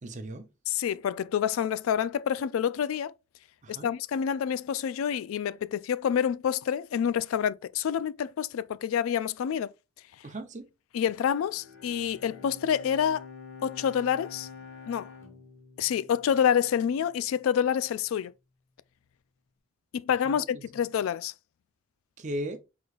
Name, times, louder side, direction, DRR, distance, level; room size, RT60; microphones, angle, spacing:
voice 1, 0.0-0.5 3.6-3.9 10.2-10.7 20.2-20.6 22.2-22.6, right 1 dB, 35° right, 0.6 m, -37 dB
voice 2, 0.7-3.1 3.7-9.7 10.9-13.3 13.6-14.5 14.9-15.1 15.8-18.3 19.9-21.3, left 8 dB, 80° left, 0.3 m, -27 dB
Bowed string instrument, 11.5-17.0, left 5 dB, 65° left, 1.3 m, -47 dB
4.7 x 3.8 x 2.4 m
head